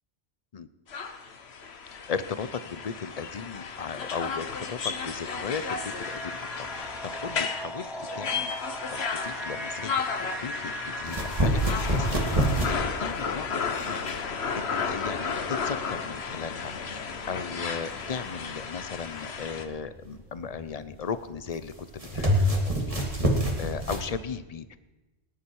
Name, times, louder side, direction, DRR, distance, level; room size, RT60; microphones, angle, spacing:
sound 1, 0.9-19.6, left 5 dB, 70° left, 1.3 m, -34 dB
voice 1, 1.9-6.3 6.6-9.9 10.2-14.2 14.6-23.3 23.6-24.8, left 6 dB, 40° left, 13 dB, 0.6 m, -37 dB
sound 2, 5.4-13.0, right 1 dB, ahead, 1.2 m, -39 dB
sound 3, 11.0-24.1, equal, 30° right, 2.2 m, -29 dB
20.0 x 10.5 x 4.7 m, 1.1 s
omnidirectional pair, 1.1 m